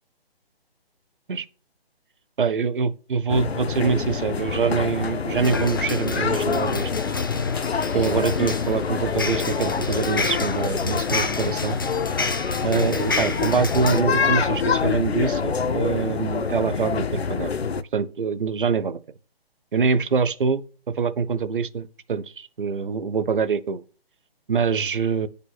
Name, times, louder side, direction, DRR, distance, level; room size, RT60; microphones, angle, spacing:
voice 1, 2.4-6.9 7.9-11.8 12.6-17.5 17.9-19.0 19.7-20.6 20.9-23.8 24.5-25.3, right 5 dB, 55° right, 0.8 m, -24 dB
sound 1, 3.3-17.8, left 5 dB, 80° left, 0.6 m, -26 dB
sound 2, 5.4-14.0, left 3 dB, 20° left, 0.4 m, -31 dB
9.2 x 5.3 x 4.2 m
figure-of-eight pair, 145°, 31 cm